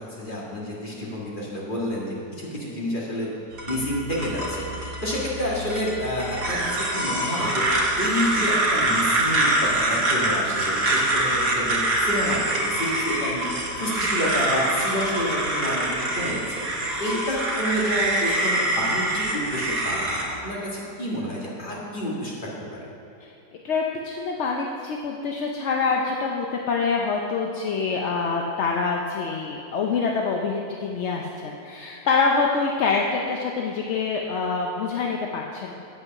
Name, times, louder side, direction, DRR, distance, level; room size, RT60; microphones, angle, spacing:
voice 1, 0.0-3.3 3.7-22.3 22.7-22.9, equal, 30° left, -5 dB, 2.0 m, -29 dB
sound 1, 3.5-20.2, right 1 dB, 40° right, 1.6 m, -25 dB
voice 2, 23.6-35.7, left 4 dB, 60° left, 0 dB, 0.8 m, -25 dB
8.5 x 8.2 x 5.8 m, 2.7 s
omnidirectional pair, 1.7 m